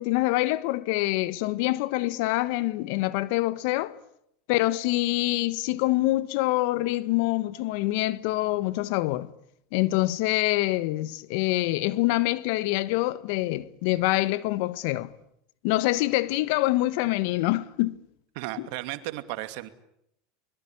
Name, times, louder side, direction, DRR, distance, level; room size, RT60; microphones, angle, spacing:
voice 1, 0.0-4.0 4.5-9.3 9.7-15.1 15.6-18.0 18.6-18.7, left 18 dB, 65° left, 1.3 m, -25 dB
voice 2, 18.4-19.7, right 17 dB, 65° right, 2.5 m, -34 dB
24.5 x 21.5 x 9.9 m
hypercardioid pair, 105°, 0 cm